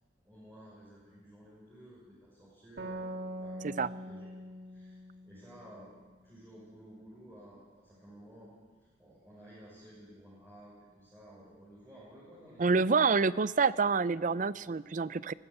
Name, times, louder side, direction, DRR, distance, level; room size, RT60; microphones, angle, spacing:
voice 1, 0.2-5.0 5.2-5.9 6.2-8.5 9.0-13.2 14.5-14.6, equal, 15° right, -8 dB, 6.2 m, -54 dB
sound 1, 2.8-6.3, equal, 65° right, 1.7 m, -43 dB
voice 2, 12.6-15.3, right 4 dB, 45° right, 18 dB, 0.5 m, -27 dB
20.5 x 15.5 x 8.3 m, 1.3 s
head